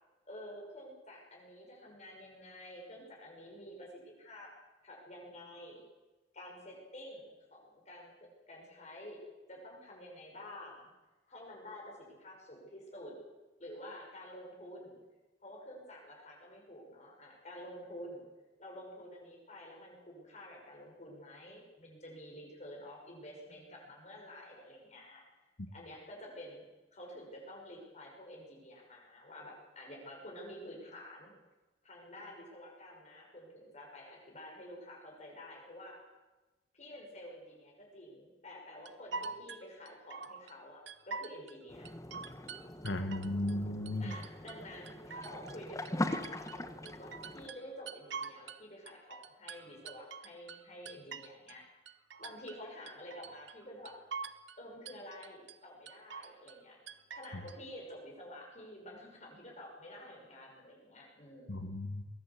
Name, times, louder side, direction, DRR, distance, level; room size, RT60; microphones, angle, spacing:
voice 1, 0.2-4.5 4.8-5.8 6.3-8.1 8.5-9.2 9.5-10.9 11.3-13.1 13.6-15.0 15.4-18.3 18.6-25.2 25.7-26.6 26.9-31.3 31.8-36.0 36.7-41.9 44.0-51.6 52.2-53.9 54.6-56.8 57.1-61.7, left 1 dB, 40° left, -1 dB, 6.0 m, -50 dB
sound 1, 38.9-40.5 40.9-41.6 41.9-43.6 43.9-44.6 44.9-46.6 46.9-48.6 48.9-51.6 51.9-52.6 52.9-53.6 53.9-54.6 54.9-55.6 55.9-56.6 56.9-57.6, right 5 dB, 80° right, 1.1 m, -45 dB
sound 2, 41.7-47.5, left 1 dB, 20° left, 1.2 m, -41 dB
voice 2, 42.8-44.1 61.5-62.1, left 1 dB, 80° left, 7 dB, 1.5 m, -35 dB
22.0 x 17.5 x 8.3 m, 1.1 s
head